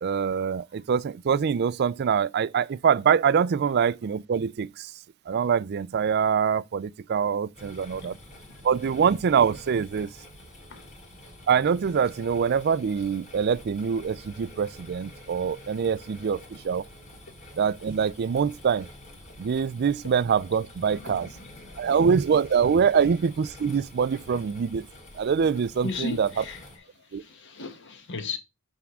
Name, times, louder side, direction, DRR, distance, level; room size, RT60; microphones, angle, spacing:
voice 1, 0.0-4.9 5.3-8.2 8.6-10.1 11.5-16.8 17.6-18.9 19.4-21.3 21.8-24.8 25.2-26.4 27.1-27.2, right 6 dB, 45° right, 0.4 m, -24 dB
sound 1, 7.5-26.8, left 1 dB, 35° left, 2.4 m, -47 dB
voice 2, 20.9-22.0 24.3-24.4 25.8-28.4, left 3 dB, 55° left, 1.2 m, -37 dB
7.2 x 3.5 x 6.1 m
head